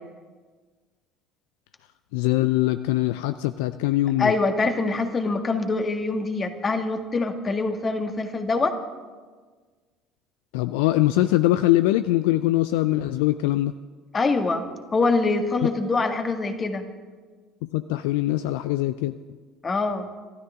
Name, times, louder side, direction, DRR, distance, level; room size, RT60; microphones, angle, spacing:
voice 1, 2.1-4.3 10.5-13.7 17.6-19.1, left 16 dB, 70° left, 13 dB, 0.4 m, -22 dB
voice 2, 4.2-8.7 14.1-14.7 14.9-16.8 19.6-20.1, left 3 dB, 30° left, 6 dB, 1.8 m, -24 dB
27.0 x 13.0 x 3.7 m, 1.4 s
hypercardioid pair, 60°, 0 cm